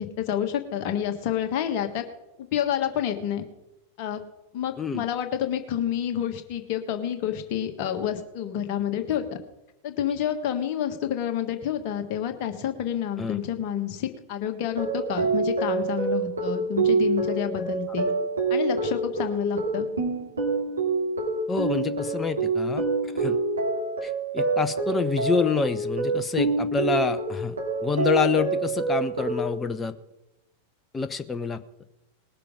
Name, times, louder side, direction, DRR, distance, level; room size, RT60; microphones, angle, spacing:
voice 1, 0.0-2.0 2.4-3.4 4.0-4.2 4.5-9.2 9.8-18.1 18.5-19.9, left 9 dB, 45° left, 5 dB, 1.6 m, -29 dB
sound 1, 14.6-29.5, right 3 dB, 75° right, 2.9 m, -26 dB
voice 2, 21.5-22.8 23.2-23.4 24.0-27.6 27.8-29.9 30.9-31.6, left 5 dB, 15° left, 10 dB, 0.6 m, -27 dB
20.0 x 6.8 x 5.1 m, 0.96 s
figure-of-eight pair, 90°, 0 cm